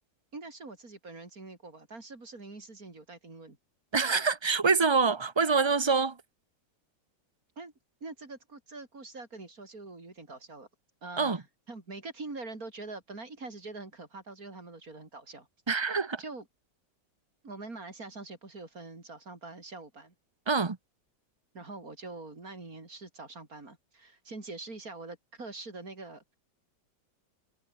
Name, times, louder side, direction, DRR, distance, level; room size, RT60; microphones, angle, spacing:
voice 1, 0.3-3.6 7.6-7.7 8.0-10.7 11.0-15.5 16.2-16.4 17.4-20.1 21.5-26.4, right 3 dB, 50° right, 4.5 m, -44 dB
voice 2, 3.9-6.2 11.2-11.4 15.7-16.2 20.5-20.8, right 4 dB, 20° right, 0.7 m, -25 dB
omnidirectional pair, 2.0 m